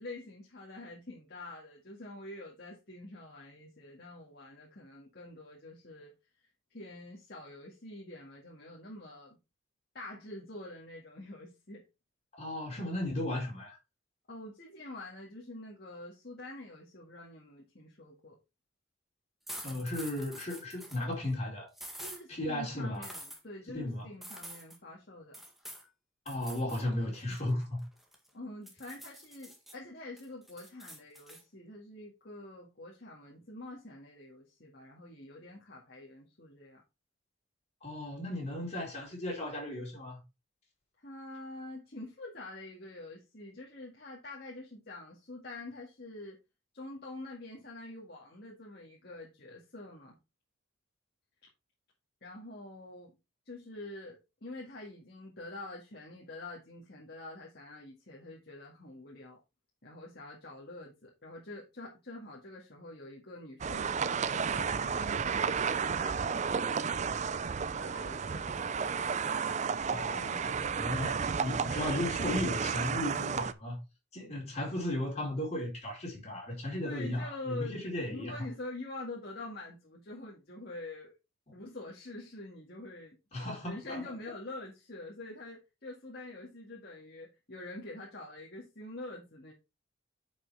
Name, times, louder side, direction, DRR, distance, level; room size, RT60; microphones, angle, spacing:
voice 1, 0.0-6.1 6.7-9.4 9.9-11.9 14.3-18.4 22.0-25.4 28.3-36.8 41.0-46.4 46.7-50.2 52.2-53.1 53.5-59.4 59.8-66.7 67.5-68.8 76.8-77.8 78.1-81.1 81.5-83.2 83.6-89.5, left 2 dB, 50° left, 2.0 m, -46 dB
voice 2, 12.3-13.8 19.6-21.7 22.3-23.1 23.7-24.1 26.3-27.8 37.8-40.2 69.9-73.8 74.1-78.5 81.5-81.6 83.3-84.1, left 1 dB, 35° left, 4.4 m, -35 dB
sound 1, 19.5-21.0 21.7-22.2 23.0-23.4 24.2-24.8 25.3-25.9 26.3-26.8 27.2-28.3 28.7-29.7 30.2-31.4, right 1 dB, ahead, 1.7 m, -46 dB
sound 2, 63.6-73.5, right 6 dB, 35° right, 0.4 m, -32 dB
10.0 x 5.7 x 3.4 m
head